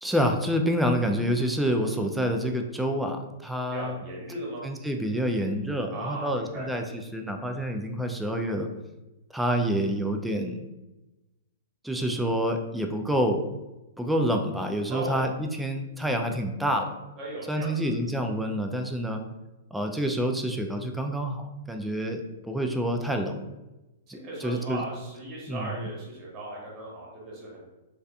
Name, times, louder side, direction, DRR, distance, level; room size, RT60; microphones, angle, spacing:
voice 1, 0.0-4.0 4.6-6.8 7.1-8.7 9.3-10.7 11.8-13.4 14.0-16.9 17.5-19.2 19.7-23.4 24.1-24.8 25.5-25.9, equal, 5° right, 4 dB, 0.3 m, -28 dB
voice 2, 3.7-4.7 5.9-6.7 14.9-15.2 17.2-17.9 24.1-27.6, right 2 dB, 30° right, -3 dB, 1.0 m, -37 dB
2.5 x 2.2 x 2.4 m, 1.0 s
hypercardioid pair, 120°, 0 cm